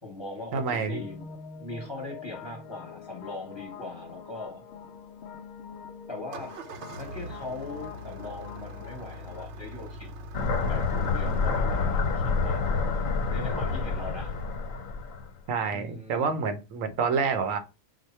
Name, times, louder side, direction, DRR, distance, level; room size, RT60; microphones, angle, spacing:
voice 1, 0.0-1.3 1.6-4.6 6.1-6.5 6.9-10.1 10.6-12.8 13.3-14.4 15.7-16.4, left 2 dB, 20° left, 1.2 m, -40 dB
voice 2, 0.5-1.0 13.5-13.6 15.5-17.6, right 5 dB, 85° right, 1.1 m, -28 dB
sound 1, 0.9-9.5, left 6 dB, 65° left, 0.8 m, -45 dB
Engine starting, 6.3-11.6, equal, 65° right, 0.9 m, -42 dB
sound 2, 10.3-15.3, left 4 dB, 85° left, 1.2 m, -27 dB
4.8 x 2.2 x 4.3 m
omnidirectional pair, 1.3 m